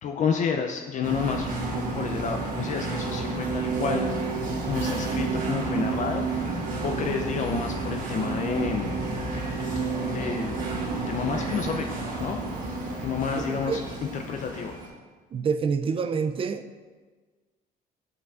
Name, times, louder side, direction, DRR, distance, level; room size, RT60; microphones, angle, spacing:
voice 1, 0.0-4.1 4.7-6.5 6.8-8.9 10.1-10.6 11.1-12.4 13.0-13.8 14.3-14.8, left 6 dB, 50° left, 0.4 m, -30 dB
sound 1, 1.0-14.9, right 3 dB, 55° right, 1.5 m, -30 dB
voice 2, 13.3-13.9 15.3-16.7, right 6 dB, 35° right, 0.4 m, -27 dB
7.8 x 5.7 x 2.4 m
cardioid pair, 110°, 17 cm